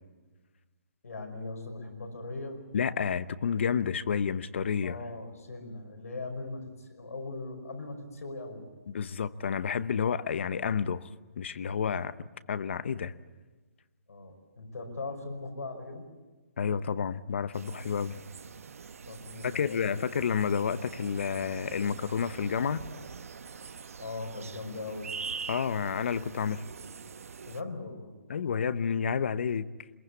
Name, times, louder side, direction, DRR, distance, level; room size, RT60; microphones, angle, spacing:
voice 1, 1.0-2.6 4.8-8.6 14.1-16.1 19.1-19.9 24.0-25.1 27.5-28.1, left 3 dB, 80° left, 5.4 m, -39 dB
voice 2, 2.7-5.0 8.9-11.1 11.4-12.2 12.5-13.1 16.6-18.2 19.4-22.8 25.5-26.6 28.3-29.7, left 7 dB, 50° left, 0.9 m, -30 dB
sound 1, 17.5-27.6, right 5 dB, 65° right, 1.0 m, -44 dB
23.0 x 21.5 x 8.4 m
hypercardioid pair, 170°, 8 cm